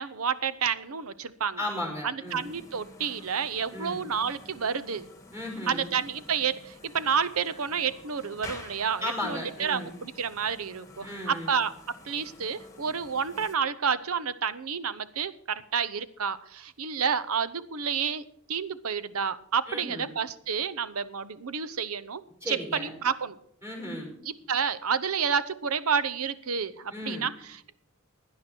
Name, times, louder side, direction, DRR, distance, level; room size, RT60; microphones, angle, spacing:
voice 1, 0.0-1.6 2.0-5.1 5.7-11.7 12.0-23.4 24.3-27.8, right 6 dB, 90° right, 15 dB, 0.8 m, -30 dB
voice 2, 1.6-2.5 3.7-4.1 5.3-5.9 9.0-9.9 11.0-11.5 19.7-20.1 22.4-22.9 23.6-24.1 26.9-27.3, left 1 dB, 15° right, 1 dB, 5.2 m, -35 dB
sound 1, 2.3-13.5, left 2 dB, 15° left, 1.8 m, -49 dB
17.0 x 10.5 x 4.5 m, 0.66 s
head